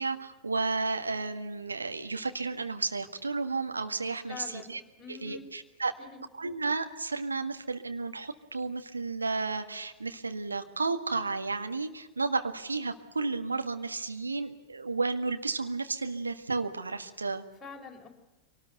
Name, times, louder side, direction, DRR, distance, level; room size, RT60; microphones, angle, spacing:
voice 1, 0.0-4.8 5.1-5.9 6.4-17.4, right 3 dB, 80° right, 7 dB, 1.6 m, -32 dB
voice 2, 4.3-5.5 6.0-6.2 17.6-18.1, left 5 dB, 15° left, 0 dB, 4.5 m, -45 dB
24.0 x 19.0 x 8.0 m, 1.1 s
figure-of-eight pair, 90°, 0 cm